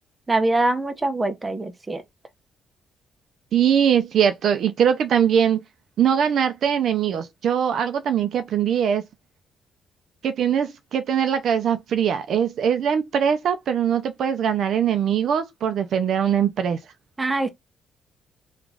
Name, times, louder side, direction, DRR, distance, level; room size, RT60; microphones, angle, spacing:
voice 1, 0.3-2.0 17.2-17.5, right 2 dB, 20° right, 0.6 m, -23 dB
voice 2, 3.5-5.6 6.0-9.0 10.2-16.8, right 8 dB, 65° right, 0.5 m, -21 dB
3.0 x 2.4 x 3.4 m
cardioid pair, 90°, 0 cm